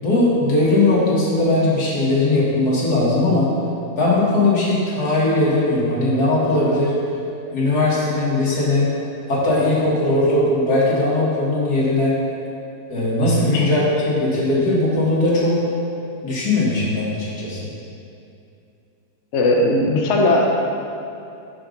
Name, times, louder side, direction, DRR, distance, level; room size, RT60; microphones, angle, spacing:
voice 1, 0.0-3.5 4.0-6.9 7.5-8.9 9.3-12.2 12.9-15.6 16.2-17.6, left 2 dB, 70° left, -6 dB, 2.2 m, -19 dB
voice 2, 19.3-20.5, left 2 dB, 55° left, 0 dB, 0.9 m, -17 dB
5.7 x 5.1 x 6.4 m, 2.7 s
omnidirectional pair, 1.7 m